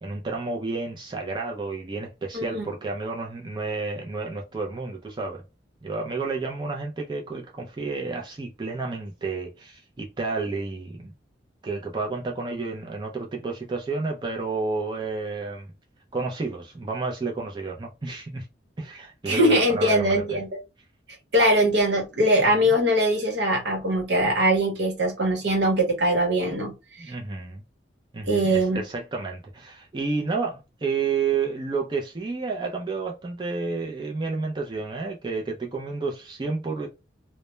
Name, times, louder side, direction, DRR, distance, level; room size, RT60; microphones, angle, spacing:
voice 1, 0.0-5.4 5.8-11.1 11.6-15.7 16.1-18.5 18.8-20.2 22.5-22.7 27.0-27.6 28.1-36.9, right 4 dB, 25° right, 0.4 m, -30 dB
voice 2, 2.3-2.7 19.3-20.5 21.3-27.1 28.2-28.8, equal, 70° right, 0.9 m, -22 dB
2.2 x 2.1 x 3.0 m
head